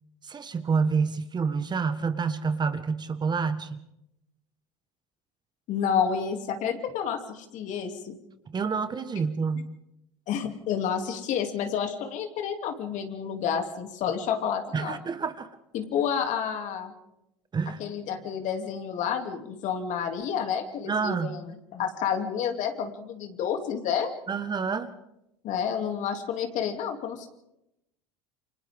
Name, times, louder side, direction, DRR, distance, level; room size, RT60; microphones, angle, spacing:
voice 1, 0.2-3.8 8.5-9.7 14.7-15.5 17.5-17.8 20.8-21.4 24.3-24.9, right 5 dB, 30° right, 10 dB, 1.5 m, -28 dB
voice 2, 5.7-8.1 10.3-15.0 15.7-16.9 17.8-21.4 21.7-24.1 25.4-27.3, left 7 dB, 55° left, 5 dB, 2.9 m, -30 dB
28.5 x 25.5 x 3.7 m, 0.84 s
hypercardioid pair, 80°, 15 cm